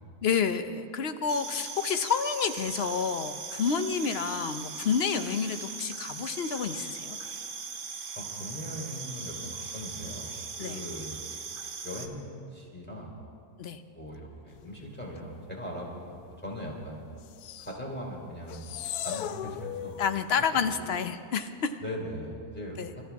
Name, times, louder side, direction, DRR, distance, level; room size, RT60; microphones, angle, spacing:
voice 1, 0.2-7.2 10.6-10.7 13.6-13.8 20.0-21.8 22.8-22.9, left 6 dB, 50° left, 9 dB, 0.8 m, -29 dB
sound 1, 1.3-12.1, right 5 dB, 70° right, 1.6 m, -39 dB
voice 2, 8.1-10.3 10.6-11.2 11.8-13.2 13.9-17.0 17.6-20.0 20.5-20.7 21.8-23.0, equal, 5° left, -2 dB, 3.4 m, -40 dB
sound 2, 17.2-17.8 18.5-20.2, left 10 dB, 80° left, 1.1 m, -37 dB
27.0 x 14.5 x 3.6 m, 2.3 s
omnidirectional pair, 1.7 m